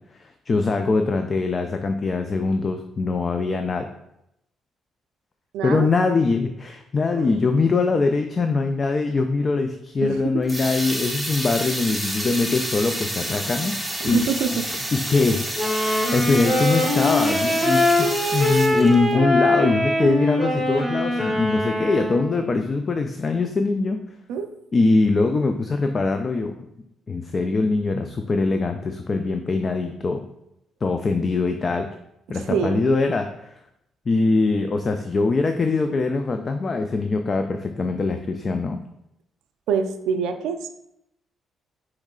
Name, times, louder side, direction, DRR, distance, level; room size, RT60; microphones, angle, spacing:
voice 1, 0.1-3.9 5.6-13.8 14.0-14.2 15.1-15.4 15.8-24.0 24.7-26.5 27.1-30.2 30.8-31.9 32.3-33.6 34.1-38.8, left 3 dB, 40° left, 6 dB, 0.3 m, -22 dB
voice 2, 5.5-5.9 7.1-7.4 10.0-10.4 14.0-14.7 24.3-24.5 32.3-32.9 39.7-40.7, right 6 dB, 90° right, 7 dB, 0.4 m, -26 dB
sound 1, 10.4-19.2, right 1 dB, ahead, 0.8 m, -29 dB
Wind instrument woodwind instrument, 15.5-22.4, left 1 dB, 20° left, 1.8 m, -22 dB
4.4 x 3.1 x 3.7 m, 0.82 s
cardioid pair, 90°, 0 cm